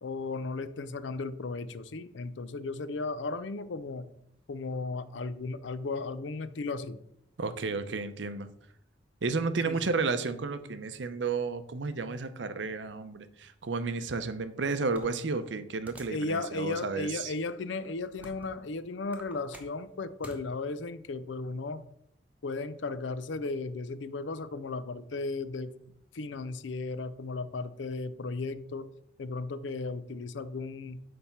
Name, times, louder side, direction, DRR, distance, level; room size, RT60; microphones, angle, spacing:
voice 1, 0.0-4.1 4.5-7.0 9.7-9.8 16.1-21.8 22.4-25.7 26.1-28.9 29.2-31.0, left 3 dB, 90° left, 14 dB, 0.5 m, -35 dB
voice 2, 7.4-8.5 9.2-17.3, right 4 dB, 85° right, 11 dB, 0.6 m, -32 dB
sound 1, 14.9-16.3 16.8-16.9 17.6-18.6 19.0-20.4, right 1 dB, 10° right, 0.9 m, -48 dB
8.5 x 3.4 x 5.7 m, 0.73 s
head